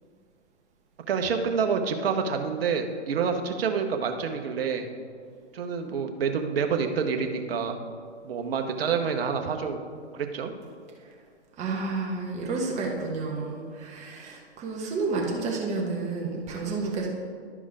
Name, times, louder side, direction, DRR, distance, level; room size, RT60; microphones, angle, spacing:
voice 1, 1.1-4.9 5.5-7.8 8.2-9.8 10.1-10.5, right 6 dB, 55° right, 5 dB, 1.2 m, -27 dB
voice 2, 11.6-17.1, right 3 dB, 20° right, -2 dB, 1.5 m, -30 dB
12.0 x 5.3 x 5.0 m, 2.1 s
hypercardioid pair, 130°, 34 cm